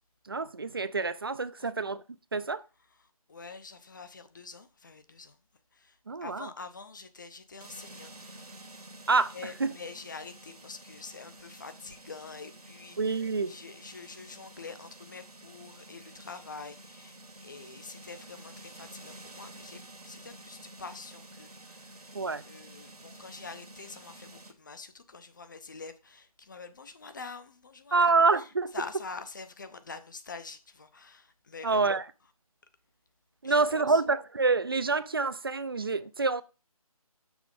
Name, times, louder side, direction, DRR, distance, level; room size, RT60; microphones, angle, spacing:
voice 1, 0.3-2.0 2.3-2.6 6.1-6.5 9.1-9.3 9.6-9.7 13.0-13.5 22.1-22.4 27.9-28.7 31.6-32.0 33.4-36.4, right 4 dB, 40° right, 0.4 m, -27 dB
voice 2, 3.0-5.4 5.7-8.6 9.3-22.1 22.4-32.0 33.4-34.0, left 4 dB, 30° left, 0.6 m, -46 dB
sound 1, 7.6-24.5, right 2 dB, 85° right, 1.5 m, -50 dB
6.2 x 4.5 x 5.1 m
figure-of-eight pair, 160°, 19 cm